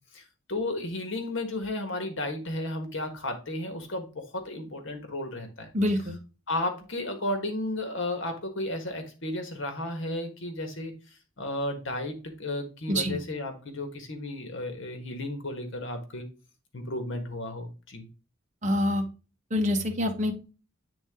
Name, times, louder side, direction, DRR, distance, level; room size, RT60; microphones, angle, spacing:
voice 1, 0.5-5.7 6.5-10.9 11.4-16.3 16.7-18.1, left 1 dB, 65° left, 5 dB, 1.5 m, -33 dB
voice 2, 5.7-6.2 12.9-13.2 18.6-19.0 19.5-20.3, left 1 dB, 35° right, 3 dB, 1.3 m, -26 dB
8.7 x 3.7 x 3.7 m, 0.33 s
head